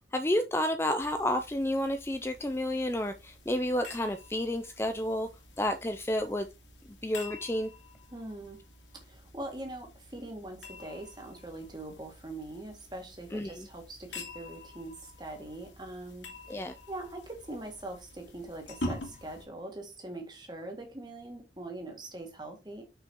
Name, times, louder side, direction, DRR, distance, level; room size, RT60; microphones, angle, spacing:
voice 1, 0.1-5.3 5.6-6.5 7.0-7.7 13.3-13.7 16.5-16.7, left 1 dB, 15° left, 0.4 m, -30 dB
sound 1, 1.0-19.5, left 1 dB, 80° left, 2.5 m, -47 dB
voice 2, 8.1-8.6 8.9-16.6 16.9-22.8, right 2 dB, 25° right, 1.9 m, -42 dB
6.0 x 5.5 x 4.5 m
head